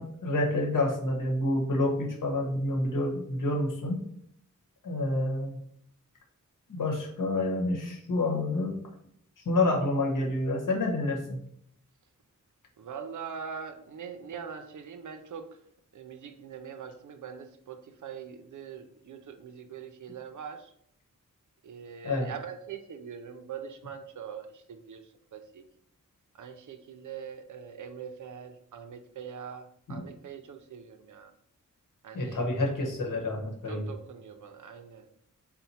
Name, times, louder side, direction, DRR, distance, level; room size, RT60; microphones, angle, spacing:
voice 1, 0.0-4.0 4.8-5.6 6.7-8.8 9.4-11.4 22.0-22.3 29.9-30.0 32.1-33.8, left 2 dB, 80° left, 0 dB, 1.0 m, -28 dB
voice 2, 6.8-7.1 12.8-15.6 15.9-20.7 21.6-25.6 26.3-31.3 32.0-32.4 33.6-35.1, right 7 dB, 70° right, 8 dB, 0.5 m, -43 dB
4.2 x 2.1 x 4.1 m, 0.69 s
wide cardioid pair, 135°, 31 cm